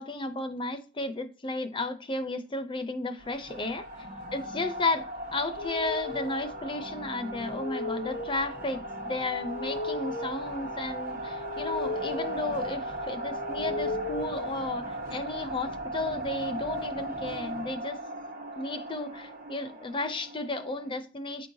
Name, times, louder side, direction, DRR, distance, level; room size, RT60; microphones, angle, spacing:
voice 1, 0.0-3.8 4.3-5.1 5.3-18.0 18.6-21.5, left 2 dB, 25° left, 0.6 m, -33 dB
sound 1, 3.2-20.9, right 1 dB, 45° right, 1.1 m, -38 dB
sound 2, 5.6-15.3, left 2 dB, 70° left, 0.7 m, -38 dB
9.1 x 4.6 x 2.7 m
head